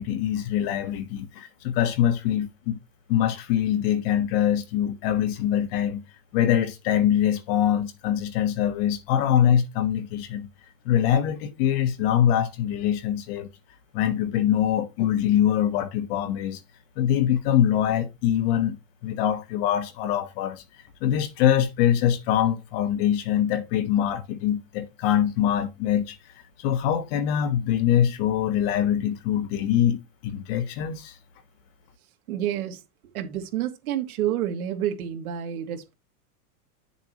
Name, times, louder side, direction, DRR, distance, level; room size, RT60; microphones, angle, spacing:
voice 1, 0.0-2.8 3.1-6.0 6.3-10.5 10.8-13.5 13.9-16.6 17.0-18.8 19.0-20.6 21.0-26.2 26.6-31.1, left 10 dB, 40° left, 1.4 m, -23 dB
voice 2, 32.3-32.8 33.1-35.9, right 11 dB, 70° right, 2.4 m, -29 dB
10.0 x 6.9 x 3.1 m
supercardioid pair, 165°, 45 cm